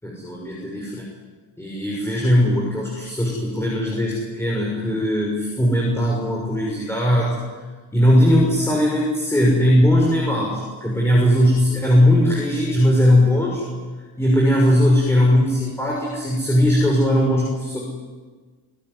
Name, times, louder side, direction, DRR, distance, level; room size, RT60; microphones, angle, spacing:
voice 1, 0.0-1.1 1.6-7.4 7.9-13.6 14.2-17.8, equal, 5° left, -3 dB, 6.5 m, -19 dB
29.0 x 17.0 x 9.9 m, 1.4 s
cardioid pair, 115°, 40 cm